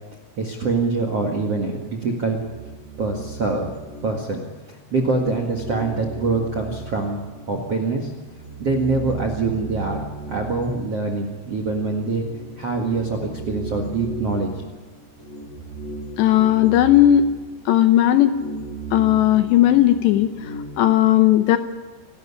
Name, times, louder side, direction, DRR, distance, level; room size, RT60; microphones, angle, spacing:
voice 1, 0.4-2.4 3.0-3.7 4.0-4.4 4.7-7.2 7.5-8.1 8.6-10.0 10.3-12.2 12.6-14.6, right 3 dB, 55° right, 3 dB, 1.7 m, -24 dB
sound 1, 2.4-4.7 5.0-7.7 8.1-21.0, right 3 dB, 45° left, 7.6 m, -36 dB
voice 2, 16.2-17.3 17.7-18.4 18.9-21.6, left 12 dB, 75° left, 9 dB, 2.7 m, -16 dB
28.0 x 13.0 x 10.0 m, 1.3 s
omnidirectional pair, 5.7 m